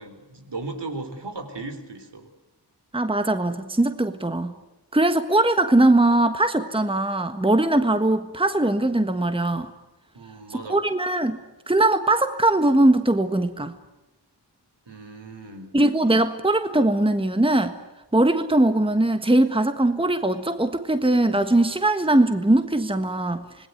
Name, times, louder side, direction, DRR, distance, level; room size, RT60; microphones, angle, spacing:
voice 1, 0.0-2.3 10.1-10.8 14.9-15.7, right 3 dB, 75° right, 7 dB, 4.3 m, -36 dB
voice 2, 2.9-4.5 4.9-9.7 10.7-11.4 11.7-13.7 15.7-17.7 18.1-23.7, right 2 dB, 10° right, 8 dB, 1.5 m, -21 dB
26.5 x 20.0 x 9.5 m, 1.1 s
wide cardioid pair, 80°, 42 cm